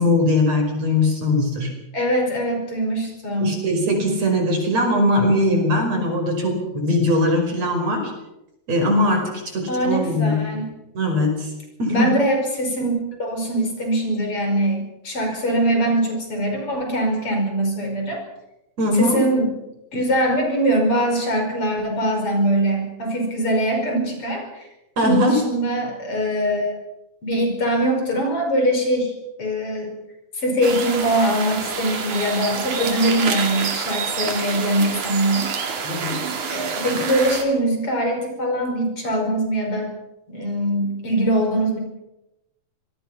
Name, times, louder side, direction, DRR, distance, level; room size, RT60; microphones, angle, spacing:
voice 1, 0.0-1.7 3.4-8.1 8.7-10.4 10.9-11.5 11.8-12.1 18.8-19.2 25.0-25.4 35.8-36.2, left 1 dB, 60° right, 3 dB, 6.4 m, -20 dB
voice 2, 1.9-3.6 9.7-10.7 11.9-18.2 18.9-19.5 19.9-24.6 25.0-26.7 27.2-29.1 29.4-29.9 30.3-35.5 36.5-39.9 40.3-41.8, right 1 dB, 45° left, 3 dB, 6.2 m, -22 dB
sound 1, 30.6-37.4, right 5 dB, 80° right, 4.0 m, -27 dB
26.5 x 21.0 x 5.8 m, 0.92 s
omnidirectional pair, 3.4 m